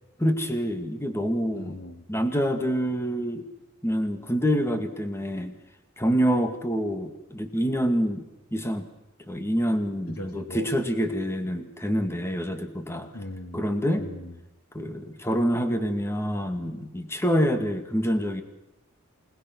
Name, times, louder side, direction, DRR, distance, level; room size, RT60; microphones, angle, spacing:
voice 1, 0.2-1.8 2.1-3.5 3.8-5.5 6.0-8.2 8.5-8.9 9.3-13.1 13.5-14.0 14.7-18.4, equal, 10° left, 7 dB, 2.2 m, -26 dB
voice 2, 1.5-2.1 10.2-10.7 13.1-13.6 14.0-14.4, left 1 dB, 90° left, 6 dB, 3.0 m, -39 dB
28.5 x 20.0 x 6.2 m, 0.99 s
head